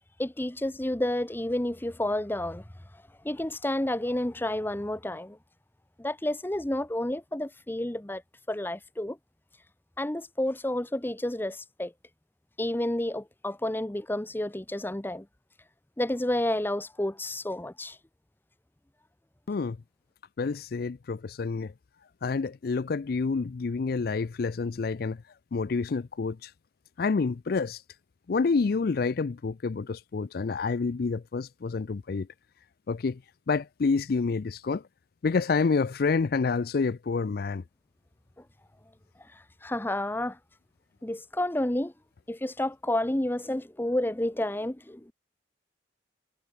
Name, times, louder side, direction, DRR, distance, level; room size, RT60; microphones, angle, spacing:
voice 1, 0.2-2.6 3.2-5.4 6.0-8.2 8.5-9.2 10.0-11.9 12.6-15.3 16.0-18.0 39.3-40.4 41.0-41.9 42.3-45.1, left 1 dB, 10° left, 0.8 m, -30 dB
voice 2, 20.4-21.7 22.2-25.2 25.5-26.5 27.0-27.8 28.3-32.3 32.9-33.2 33.5-34.8 35.2-37.6, left 4 dB, 55° left, 0.4 m, -28 dB
head